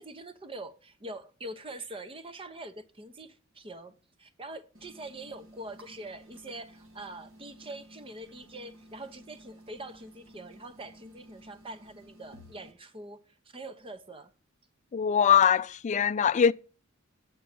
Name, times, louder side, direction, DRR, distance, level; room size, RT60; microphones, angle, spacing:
voice 1, 0.0-14.3, right 2 dB, 25° right, 0.7 m, -44 dB
sound 1, 4.7-12.7, equal, 70° right, 1.8 m, -54 dB
voice 2, 14.9-16.5, left 8 dB, 35° left, 0.3 m, -22 dB
8.4 x 4.6 x 6.0 m
head